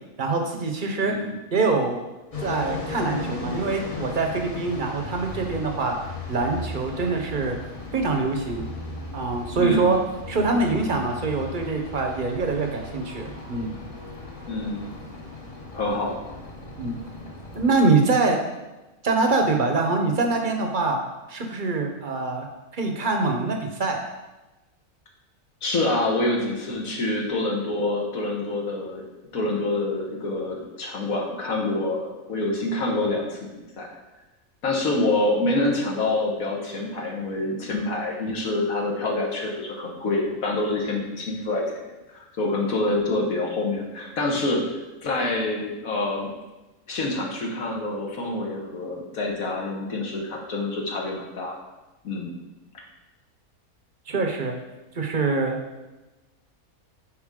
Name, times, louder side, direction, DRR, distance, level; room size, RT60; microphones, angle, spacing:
voice 1, 0.2-1.1 1.5-2.0 2.4-6.0 6.3-7.6 7.9-8.7 9.1-10.0 10.3-13.7 16.8-17.0 17.5-18.4 19.0-21.0 21.3-22.5 22.7-24.0 54.1-54.6 54.9-55.6, right 3 dB, 40° right, 3 dB, 0.9 m, -24 dB
sound 1, 2.3-17.7, left 3 dB, 25° left, 0.9 m, -37 dB
voice 2, 9.6-9.9 14.5-14.9 15.7-16.2 25.6-29.0 29.3-33.9 34.6-41.6 42.1-44.6 45.0-46.3 46.9-51.6 52.0-52.4, left 2 dB, 70° left, -1 dB, 1.6 m, -26 dB
9.5 x 4.2 x 3.7 m, 1.1 s
omnidirectional pair, 1.6 m